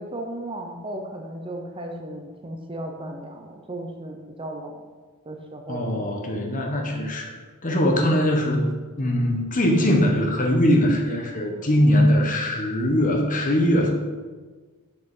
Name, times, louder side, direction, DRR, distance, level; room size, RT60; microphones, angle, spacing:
voice 1, 0.0-4.8 5.3-6.0, right 1 dB, 25° right, 2 dB, 0.7 m, -35 dB
voice 2, 5.7-7.3 7.6-8.6 9.0-13.9, equal, 35° left, 1 dB, 1.1 m, -21 dB
6.5 x 4.8 x 5.6 m, 1.4 s
head